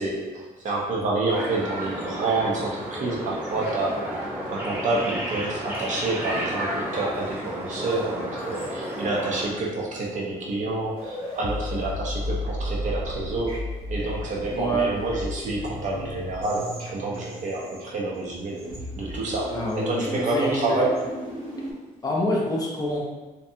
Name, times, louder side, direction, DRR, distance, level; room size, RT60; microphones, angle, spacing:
voice 1, 0.0-4.1 4.5-13.5 13.9-18.7 19.0-21.0, right 2 dB, 55° right, -3 dB, 0.5 m, -28 dB
sound 1, 1.3-9.4, equal, 15° right, 0.7 m, -32 dB
sound 2, 8.5-9.4 10.5-10.6 10.8-18.2 18.6-21.7, left 1 dB, 85° right, 1.2 m, -34 dB
voice 2, 14.5-15.0 19.5-20.8 22.0-23.0, equal, 25° left, -2 dB, 0.5 m, -26 dB
2.6 x 2.2 x 2.6 m, 1.2 s
cardioid pair, 135°, 15 cm